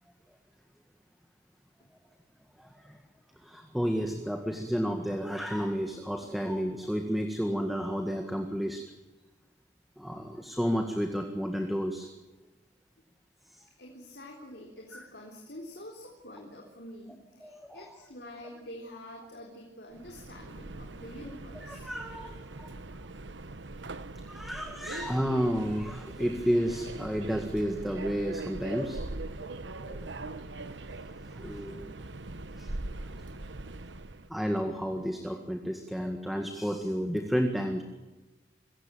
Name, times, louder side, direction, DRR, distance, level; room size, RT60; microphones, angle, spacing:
voice 1, 2.6-3.0 3.4-8.8 10.0-12.1 13.5-13.7 14.9-15.0 17.4-17.9 21.6-22.7 24.3-29.0 29.4-29.5 29.8-30.1 31.2-31.9 32.6-32.7 33.2-33.6 34.3-37.8, equal, ahead, 4 dB, 1.8 m, -31 dB
voice 2, 13.8-21.9, left 1 dB, 65° left, 0 dB, 3.7 m, -47 dB
Subway metro underground, 19.9-34.3, right 2 dB, 85° right, 1.1 m, -41 dB
25.5 x 16.5 x 9.0 m, 1.1 s
head